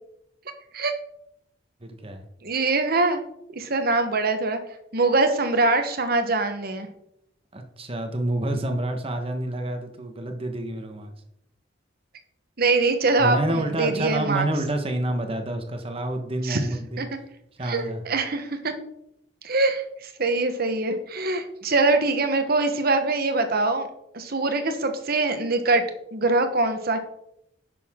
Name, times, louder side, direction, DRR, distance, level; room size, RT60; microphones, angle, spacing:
voice 1, 1.8-2.2 7.5-11.1 13.2-17.1 17.6-18.0, right 1 dB, 30° right, 5 dB, 1.3 m, -28 dB
voice 2, 2.4-3.2 3.5-4.6 4.9-6.9 12.6-14.5 16.4-16.6 17.0-17.1 17.6-18.7 19.4-23.9 24.1-25.8 26.1-27.0, right 3 dB, 55° right, 7 dB, 1.2 m, -23 dB
10.5 x 6.8 x 3.7 m, 0.77 s
head